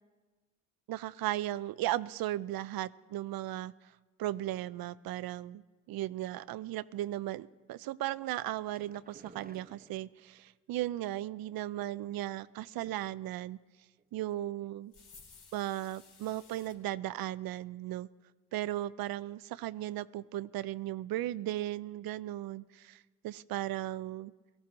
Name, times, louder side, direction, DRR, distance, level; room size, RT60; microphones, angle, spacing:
voice 1, 0.9-3.7 4.2-13.6 14.1-14.9 15.5-18.1 18.5-24.3, right 14 dB, 70° right, 19 dB, 0.5 m, -36 dB
sound 1, 8.7-10.5 11.5-12.4 12.8-13.3 13.5-13.6 14.0-14.1, right 4 dB, 25° right, 1.0 m, -56 dB
sound 2, 14.9-16.8, left 5 dB, 70° left, 3.7 m, -56 dB
17.5 x 14.0 x 3.8 m, 1.3 s
supercardioid pair, 55°, 38 cm